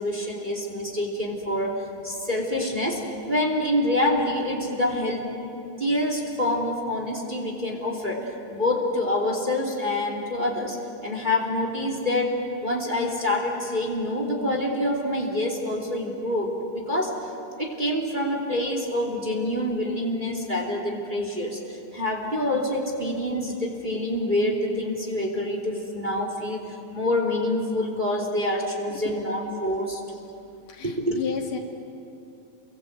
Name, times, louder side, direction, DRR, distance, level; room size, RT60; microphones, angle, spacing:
voice 1, 0.0-1.7 2.0-3.0 3.3-5.2 5.8-10.8 11.0-17.1 17.6-30.0 30.8-31.2, left 1 dB, 15° right, 1 dB, 2.9 m, -26 dB
voice 2, 30.7-31.6, left 7 dB, 80° left, 1 dB, 3.9 m, -32 dB
29.5 x 23.0 x 8.1 m, 2.7 s
omnidirectional pair, 3.6 m